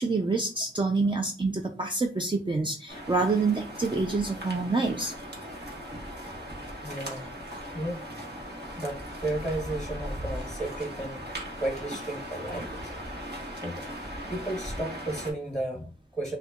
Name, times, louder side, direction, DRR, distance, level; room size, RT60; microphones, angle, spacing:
voice 1, 0.0-5.1, right 3 dB, 25° right, 2 dB, 0.4 m, -27 dB
sound 1, 2.9-15.3, equal, 55° right, 1.2 m, -38 dB
voice 2, 6.8-7.3 7.7-8.0 8.8-11.2 11.6-13.0 13.6-13.8 14.3-16.4, right 1 dB, 5° left, 0 dB, 1.0 m, -33 dB
6.4 x 2.2 x 2.4 m, 0.36 s
wide cardioid pair, 60°, 21 cm